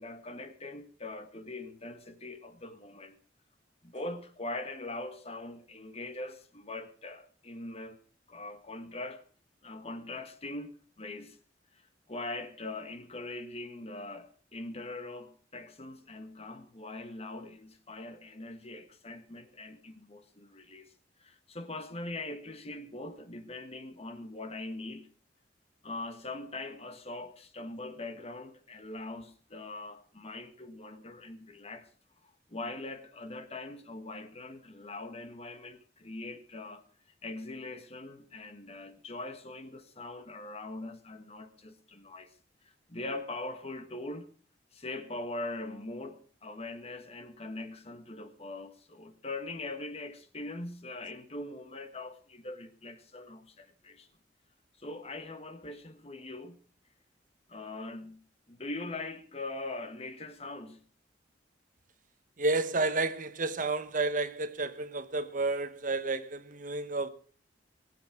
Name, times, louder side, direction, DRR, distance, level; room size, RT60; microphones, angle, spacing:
voice 1, 0.0-3.2 3.8-8.0 8.3-9.2 9.6-11.4 11.7-11.8 12.1-20.9 21.2-25.1 25.8-31.9 32.2-36.8 37.2-42.3 42.6-44.3 44.7-54.1 54.8-56.6 57.5-58.2 58.5-60.8, left 2 dB, 35° left, 1.6 m, -42 dB
voice 2, 62.4-67.1, right 3 dB, 45° right, 1.1 m, -31 dB
21.0 x 7.7 x 6.0 m
head